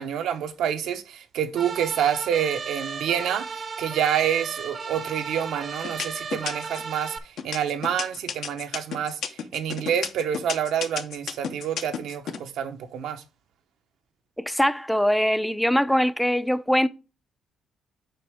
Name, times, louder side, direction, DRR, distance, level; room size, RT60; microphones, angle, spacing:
voice 1, 0.0-13.2, right 9 dB, 80° right, 0.8 m, -28 dB
sound 1, 1.6-7.2, right 5 dB, 45° right, 0.7 m, -35 dB
sound 2, 4.9-5.4 5.8-6.9 7.4-12.4, left 7 dB, 75° left, 0.8 m, -32 dB
voice 2, 14.4-16.9, equal, 5° left, 0.5 m, -22 dB
7.7 x 4.7 x 3.5 m
cardioid pair, 90°, 0 cm